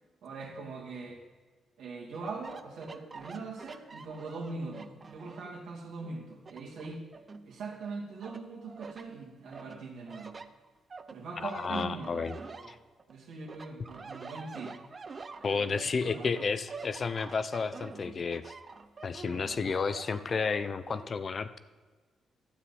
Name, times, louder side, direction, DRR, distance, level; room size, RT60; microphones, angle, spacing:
voice 1, 0.2-1.2 1.8-7.0 7.4-10.4 11.1-12.7 13.1-14.7 15.6-16.3, right 4 dB, 80° right, -2 dB, 2.3 m, -41 dB
sound 1, 2.1-5.6 6.0-7.8 8.2-9.1 9.5-13.1 13.5-21.1, right 4 dB, 25° right, 0.5 m, -47 dB
voice 2, 11.4-12.4 12.7-12.8 15.4-18.5 19.0-21.6, left 5 dB, 30° left, 13 dB, 0.4 m, -32 dB
12.0 x 9.2 x 4.2 m, 1.4 s
cardioid pair, 170°, 0 cm